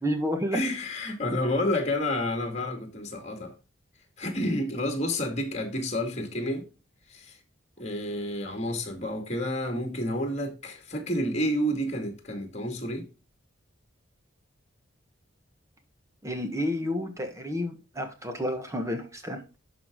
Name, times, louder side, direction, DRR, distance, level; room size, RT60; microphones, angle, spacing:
voice 1, 0.0-0.6 16.2-19.6, equal, 15° right, 1.4 m, -30 dB
voice 2, 0.5-3.5 4.2-6.7 7.1-7.4 7.8-13.1, left 1 dB, 35° left, 2.2 m, -30 dB
12.0 x 5.0 x 3.7 m
head